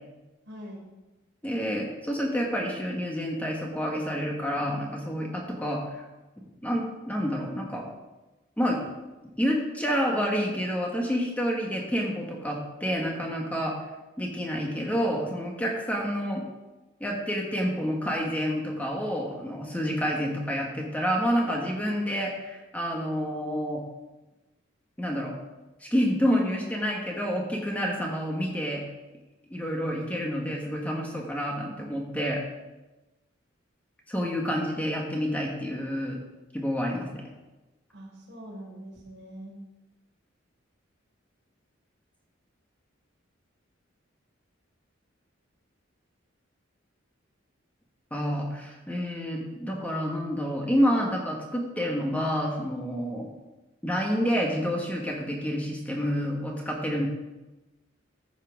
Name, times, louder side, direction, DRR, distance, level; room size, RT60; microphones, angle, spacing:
voice 1, 0.5-0.8 37.9-39.6, equal, 60° right, -3 dB, 3.9 m, -43 dB
voice 2, 1.4-6.0 6.6-7.9 8.6-8.8 9.4-13.8 14.2-16.4 17.0-23.8 25.0-25.3 25.8-28.8 29.5-32.4 34.1-36.2 36.5-37.2 48.1-53.3 53.8-57.1, equal, 10° left, -1 dB, 1.3 m, -28 dB
14.5 x 5.6 x 4.9 m, 1.1 s
head